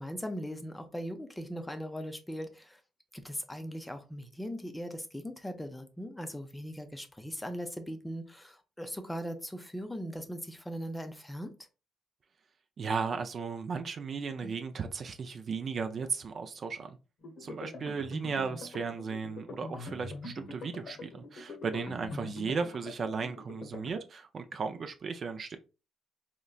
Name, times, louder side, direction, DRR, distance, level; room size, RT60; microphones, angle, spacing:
voice 1, 0.0-2.8 3.1-11.5 14.4-14.5, equal, 10° left, 0.5 m, -39 dB
voice 2, 12.8-17.0 17.4-25.6, right 5 dB, 50° right, 0.4 m, -35 dB
sound 1, 17.2-23.9, left 3 dB, 65° left, 0.8 m, -44 dB
3.8 x 2.1 x 2.3 m
cardioid pair, 90°, 0 cm